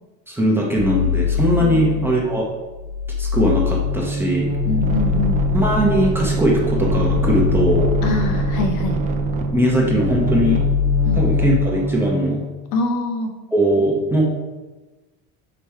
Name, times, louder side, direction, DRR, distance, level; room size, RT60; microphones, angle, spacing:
voice 1, 0.3-2.5 3.2-4.5 5.5-7.9 9.5-10.6 11.1-12.4 13.5-14.2, equal, 5° right, -3 dB, 0.8 m, -20 dB
sound 1, 0.8-2.2 2.6-9.1 9.4-11.7, left 8 dB, 80° right, 0.8 m, -23 dB
voice 2, 1.6-2.1 4.6-5.4 8.0-9.0 11.0-11.2 12.7-13.3, left 2 dB, 60° left, 4 dB, 1.0 m, -24 dB
sound 2, 3.8-12.4, right 3 dB, 20° right, 0.3 m, -24 dB
5.3 x 5.0 x 4.4 m, 1.2 s
cardioid pair, 165°, 36 cm